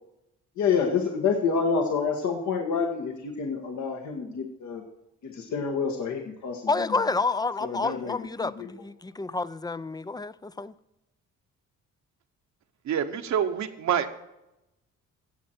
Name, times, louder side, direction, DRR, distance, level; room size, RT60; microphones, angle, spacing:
voice 1, 0.6-4.8 5.2-7.0 7.6-8.7, left 5 dB, 70° left, 2 dB, 1.6 m, -28 dB
voice 2, 6.7-10.7, left 3 dB, 15° left, 17 dB, 0.4 m, -29 dB
voice 3, 12.8-14.3, right 8 dB, 65° right, 7 dB, 1.1 m, -27 dB
16.5 x 7.8 x 4.4 m, 0.91 s
cardioid pair, 90°, 30 cm